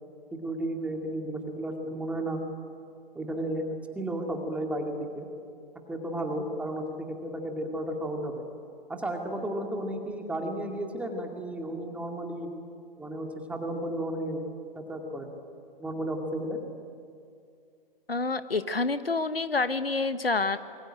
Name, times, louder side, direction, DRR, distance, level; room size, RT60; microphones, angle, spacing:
voice 1, 0.3-2.4 3.1-3.6 3.9-5.3 5.9-8.4 8.9-12.5 13.0-14.4 14.7-15.3 15.8-16.6, right 1 dB, 5° right, 3 dB, 2.4 m, -33 dB
voice 2, 18.1-20.6, left 3 dB, 80° left, 12 dB, 1.3 m, -28 dB
27.0 x 22.5 x 8.9 m, 2.4 s
figure-of-eight pair, 125°, 29 cm